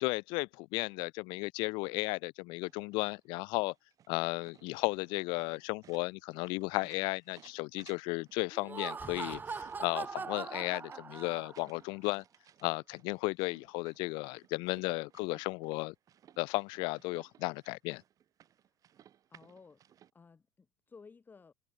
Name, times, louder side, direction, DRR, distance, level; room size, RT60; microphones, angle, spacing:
voice 1, 0.0-3.7 4.1-12.2 12.6-15.9 16.4-18.0, left 27 dB, 60° left, 0.5 m, -34 dB
sound 1, 2.7-20.1, right 10 dB, 40° right, 5.2 m, -63 dB
Laughter, 8.5-11.8, right 5 dB, 20° right, 1.0 m, -41 dB
voice 2, 19.3-19.8 20.1-21.5, left 5 dB, 20° left, 3.0 m, -56 dB
hypercardioid pair, 90°, 9 cm